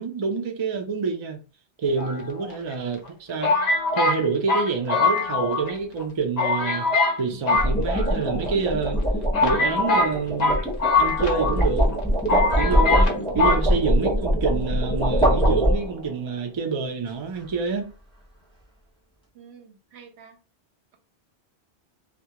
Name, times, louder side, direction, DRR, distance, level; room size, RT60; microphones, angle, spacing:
voice 1, 0.0-1.4 1.8-3.5 3.9-6.9 7.2-9.0 9.4-10.6 11.0-11.9 12.3-17.9, right 5 dB, 45° right, 0.4 m, -27 dB
sound 1, 1.8-2.1 7.3-16.2, equal, 5° left, 0.6 m, -23 dB
sound 2, 2.0-2.7 3.4-5.7 6.0-6.1 6.4-7.2 7.5-8.4 9.0-9.1 9.3-11.6 11.9-12.0 12.3-13.1 13.4-13.6, left 3 dB, 50° left, 0.6 m, -22 dB
voice 2, 19.3-20.4, right 7 dB, 85° right, 0.8 m, -47 dB
2.3 x 2.1 x 2.8 m
omnidirectional pair, 1.1 m